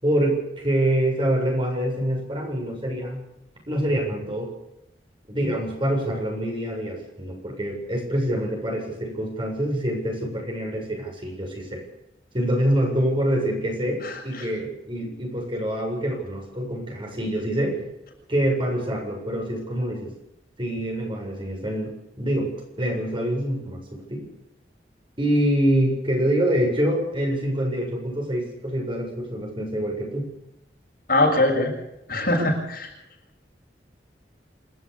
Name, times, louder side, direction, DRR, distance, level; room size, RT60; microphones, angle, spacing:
voice 1, 0.0-3.2 3.7-4.5 5.3-11.8 12.3-17.8 18.3-20.1 20.6-24.3 25.2-30.3, right 1 dB, 30° right, 0 dB, 7.4 m, -25 dB
voice 2, 14.0-14.5 31.1-31.7 32.1-32.9, left 2 dB, 55° left, 0 dB, 7.4 m, -22 dB
28.0 x 13.5 x 7.1 m, 0.86 s
head